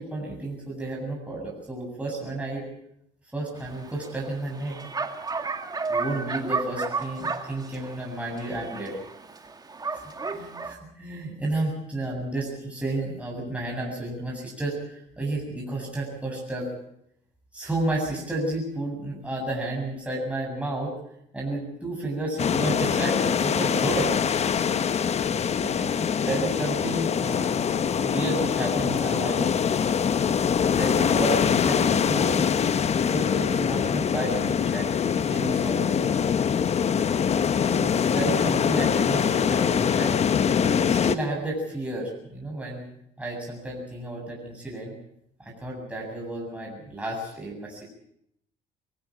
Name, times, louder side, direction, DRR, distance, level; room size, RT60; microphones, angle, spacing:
voice 1, 0.0-2.7 3.3-4.8 5.9-9.0 9.9-10.0 10.3-16.7 17.5-21.0 21.3-24.1 24.7-27.6 28.0-29.5 30.7-32.4 32.9-36.0 37.7-40.4 40.8-42.8 43.2-44.9 45.4-47.8, right 2 dB, 5° right, -2 dB, 7.7 m, -32 dB
Bark, 3.6-10.7, right 4 dB, 20° right, 2.1 m, -33 dB
sound 1, 22.4-41.2, left 7 dB, 40° left, 1.0 m, -23 dB
23.5 x 16.0 x 8.6 m, 0.75 s
cardioid pair, 110°, 17 cm